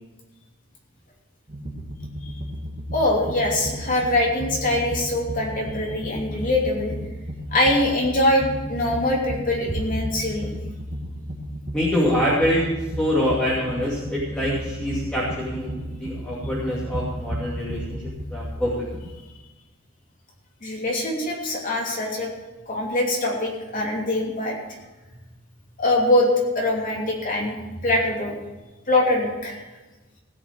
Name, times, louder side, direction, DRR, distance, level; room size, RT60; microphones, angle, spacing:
sound 1, 1.5-19.1, equal, 35° right, 1.6 m, -34 dB
voice 1, 2.9-7.0 7.5-10.5 20.6-22.3 22.7-24.5 25.8-26.3 26.5-27.6 27.8-28.3 28.9-29.6, left 1 dB, 40° left, -2 dB, 2.9 m, -23 dB
voice 2, 11.7-12.7 13.0-18.0 18.3-18.9, equal, 5° left, -8 dB, 2.6 m, -25 dB
16.5 x 6.0 x 7.8 m, 1.1 s
head